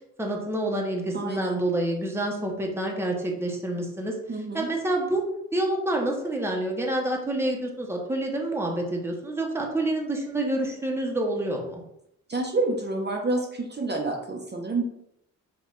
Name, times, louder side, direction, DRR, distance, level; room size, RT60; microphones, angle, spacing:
voice 1, 0.2-4.2 4.5-5.3 5.5-11.8, right 1 dB, 10° right, 0 dB, 0.9 m, -28 dB
voice 2, 1.1-1.6 4.3-4.7 12.3-14.8, right 2 dB, 35° right, 0 dB, 0.7 m, -28 dB
5.3 x 2.4 x 3.8 m, 0.79 s
cardioid pair, 95°, 29 cm